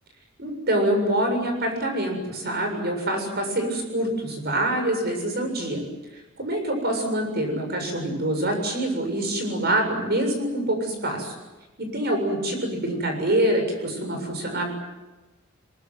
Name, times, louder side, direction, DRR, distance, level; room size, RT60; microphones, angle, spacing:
voice 1, 0.4-5.8 6.4-11.3 11.8-14.7, right 1 dB, 55° right, 4 dB, 7.2 m, -25 dB
23.0 x 22.5 x 9.5 m, 1.1 s
head